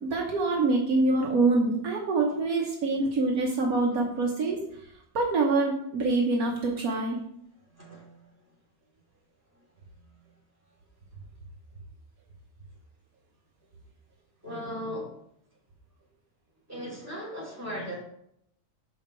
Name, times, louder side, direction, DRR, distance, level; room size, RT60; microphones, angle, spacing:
voice 1, 0.0-4.6 5.1-7.2, right 3 dB, 70° right, 0 dB, 1.4 m, -25 dB
voice 2, 7.7-8.3 10.1-10.2 14.4-15.1 16.7-18.0, equal, 10° right, -6 dB, 3.0 m, -38 dB
6.5 x 5.6 x 4.4 m, 0.73 s
omnidirectional pair, 1.6 m